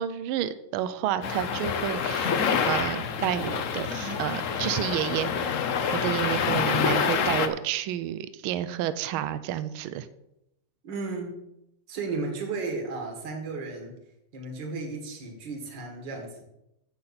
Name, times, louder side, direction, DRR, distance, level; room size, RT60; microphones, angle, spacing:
voice 1, 0.0-2.4 2.7-5.6 5.9-10.1, right 11 dB, 80° right, 13 dB, 1.4 m, -30 dB
sound 1, 1.2-7.5, left 6 dB, 65° left, 0.8 m, -27 dB
voice 2, 10.8-11.4 11.9-13.9 14.3-16.4, right 3 dB, 55° right, 2 dB, 2.4 m, -34 dB
15.5 x 5.8 x 4.2 m, 0.85 s
omnidirectional pair, 2.3 m